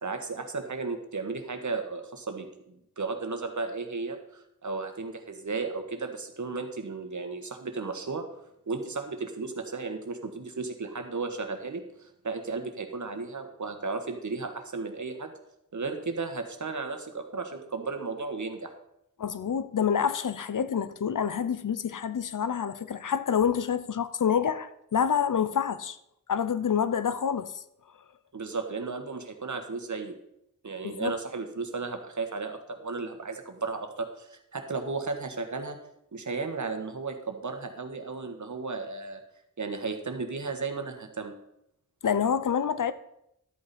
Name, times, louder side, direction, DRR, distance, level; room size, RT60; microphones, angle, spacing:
voice 1, 0.0-8.3 8.7-15.3 15.7-18.7 28.3-30.1 30.6-35.8 36.1-39.2 39.6-41.3, right 4 dB, 65° right, 1.5 m, -34 dB
voice 2, 19.2-26.0 26.3-27.6 30.8-31.2 42.0-42.9, left 7 dB, 75° left, 0.7 m, -27 dB
12.5 x 8.7 x 4.3 m
wide cardioid pair, 90°, 32 cm